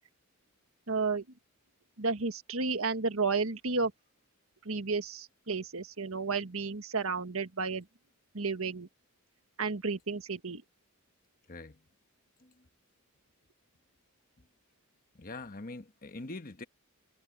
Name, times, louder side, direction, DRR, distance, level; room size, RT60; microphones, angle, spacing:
voice 1, 0.9-1.2 2.0-3.9 4.6-7.8 8.3-8.9 9.6-10.6, right 4 dB, 70° right, 1.6 m, -32 dB
voice 2, 11.5-11.8 12.4-12.7 15.1-16.6, left 2 dB, 40° left, 1.2 m, -44 dB
head